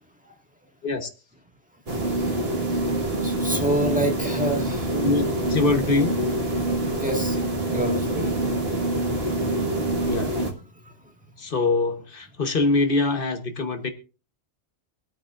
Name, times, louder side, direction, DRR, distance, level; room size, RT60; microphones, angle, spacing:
sound 1, 1.9-10.5, right 1 dB, 60° right, 2.0 m, -25 dB
voice 1, 3.2-4.9 6.9-7.4 7.7-8.4, equal, 5° right, 2 dB, 1.7 m, -27 dB
voice 2, 4.9-6.2 10.0-10.3 11.4-13.9, left 3 dB, 55° left, 7 dB, 1.3 m, -24 dB
24.0 x 9.1 x 2.5 m, 0.34 s
omnidirectional pair, 1.1 m